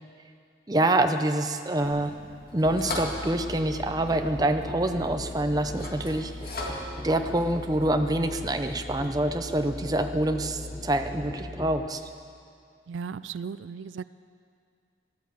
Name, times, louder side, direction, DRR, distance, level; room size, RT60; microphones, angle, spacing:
voice 1, 0.7-2.1 2.5-6.3 6.6-12.0, right 1 dB, 20° right, 7 dB, 0.6 m, -26 dB
sound 1, 1.8-9.1, left 1 dB, 50° left, 2.1 m, -41 dB
Musical instrument, 2.6-11.9, left 1 dB, 15° left, 0.9 m, -39 dB
voice 2, 12.9-14.0, right 6 dB, 90° right, 16 dB, 0.4 m, -36 dB
13.5 x 11.5 x 8.3 m, 2.3 s
head